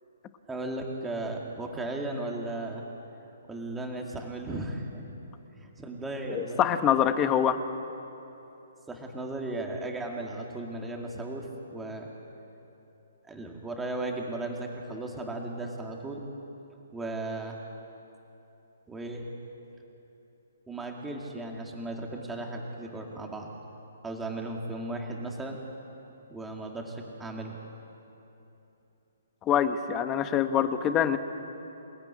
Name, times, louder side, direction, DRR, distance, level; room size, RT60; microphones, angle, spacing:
voice 1, 0.5-2.8 3.5-5.1 5.5-6.6 8.9-12.1 13.3-16.3 16.9-17.6 18.9-19.3 20.7-23.5 24.0-25.6 26.3-27.6, right 2 dB, 5° right, 0 dB, 2.3 m, -36 dB
voice 2, 6.3-7.6 29.4-31.2, left 9 dB, 15° left, 9 dB, 1.0 m, -25 dB
27.5 x 18.5 x 10.0 m, 3.0 s
hypercardioid pair, 175°, 0 cm